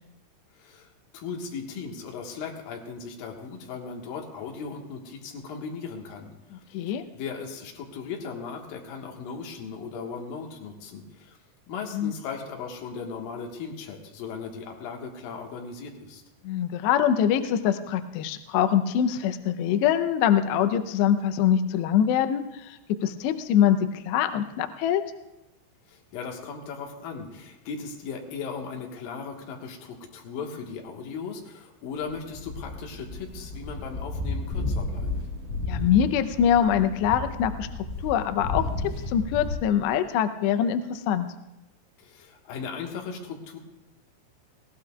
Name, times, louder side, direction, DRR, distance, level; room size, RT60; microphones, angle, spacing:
voice 1, 0.6-11.4 11.7-16.2 25.9-35.1 42.0-43.6, left 5 dB, 65° left, 0 dB, 2.4 m, -37 dB
voice 2, 16.4-22.4 23.0-23.8 24.1-25.0 35.7-37.7 38.0-38.6 39.1-41.3, left 9 dB, 90° left, 8 dB, 2.4 m, -23 dB
sound 1, 32.0-39.5, left 2 dB, 35° left, 7.6 m, -33 dB
21.0 x 17.0 x 2.3 m, 0.96 s
omnidirectional pair, 5.9 m